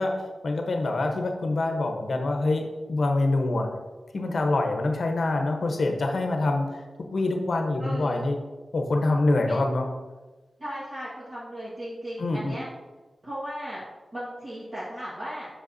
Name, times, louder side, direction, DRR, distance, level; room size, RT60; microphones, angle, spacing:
voice 1, 0.0-3.7 4.1-6.8 7.1-8.4 8.7-9.9 12.2-12.6, left 2 dB, 60° left, 3 dB, 0.9 m, -25 dB
voice 2, 7.8-8.2 9.5-9.6 10.6-12.6 13.2-13.8 14.1-15.5, equal, 35° right, -10 dB, 1.6 m, -36 dB
7.7 x 6.3 x 2.7 m, 1.3 s
wide cardioid pair, 145°, 0 cm